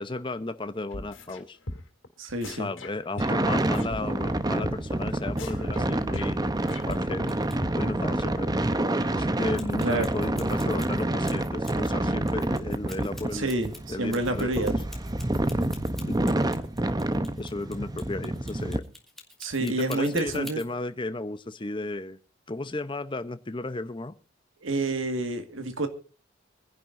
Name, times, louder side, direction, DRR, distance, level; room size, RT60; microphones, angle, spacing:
voice 1, 0.0-1.6 2.4-6.5 6.9-7.3 7.7-8.5 9.2-13.5 13.9-14.7 16.0-16.4 17.4-18.9 19.6-22.2 22.5-24.1, left 2 dB, 25° left, 0.8 m, -34 dB
sound 1, 0.9-1.4 1.7-2.1 2.4-4.0 4.3-4.4 4.6-4.8 5.0-5.1 5.4-7.3 7.6-7.7, left 1 dB, 85° left, 2.7 m, -39 dB
voice 2, 2.2-2.7 9.8-10.1 13.3-14.8 19.4-20.6 24.6-25.9, right 2 dB, 85° right, 1.9 m, -28 dB
sound 2, 3.2-18.8, right 1 dB, 20° right, 0.8 m, -28 dB
sound 3, 6.6-7.0 7.3-7.6 9.6-11.9 12.2-20.7, left 2 dB, ahead, 2.1 m, -47 dB
24.0 x 10.5 x 2.6 m
head